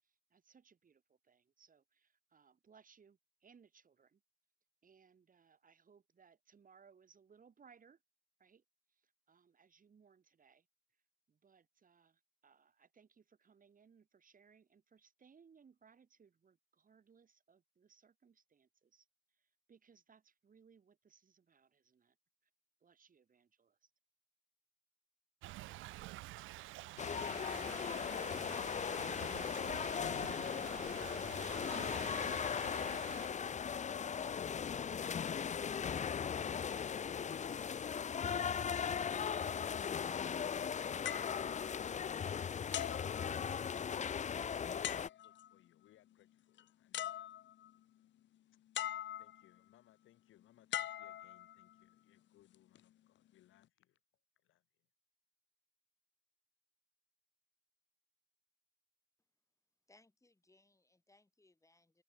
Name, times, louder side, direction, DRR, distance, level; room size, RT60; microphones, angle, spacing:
voice 1, 0.0-4.2 4.8-8.0 8.4-10.7 10.9-11.0 11.3-22.2 22.4-22.5 22.8-23.9, right 6 dB, 45° right, 7.0 m, -67 dB
Thunder / Rain, 25.4-33.3, right 18 dB, 80° right, 0.4 m, -49 dB
sound 1, 27.0-45.1, left 7 dB, 35° left, 0.7 m, -38 dB
sound 2, 41.0-42.2 42.7-43.9 44.8-45.5 46.6-46.7 46.9-47.8 48.7-49.5 50.7-51.8 52.5-52.8, left 12 dB, 65° left, 1.0 m, -43 dB
voice 2, 44.8-47.3 49.2-54.0 54.4-54.7, left 14 dB, 85° left, 7.1 m, -69 dB
voice 3, 59.9-62.0, left 2 dB, 15° left, 6.3 m, -69 dB
cardioid pair, 90°, 20 cm